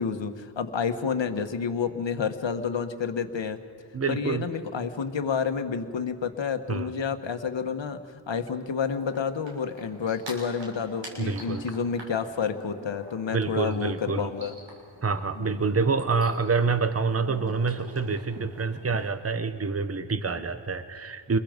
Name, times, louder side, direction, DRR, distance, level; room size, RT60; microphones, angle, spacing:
voice 1, 0.0-3.6 4.1-8.0 8.3-14.5 15.4-15.6, left 6 dB, 75° left, 7 dB, 1.5 m, -29 dB
voice 2, 3.9-4.5 6.7-6.9 11.2-11.6 13.3-14.3 15.0-21.4, right 4 dB, 30° right, 11 dB, 1.1 m, -27 dB
sound 1, 8.9-19.1, right 1 dB, 75° right, 6.6 m, -46 dB
28.5 x 22.0 x 5.2 m, 2.3 s
wide cardioid pair, 85°, 45 cm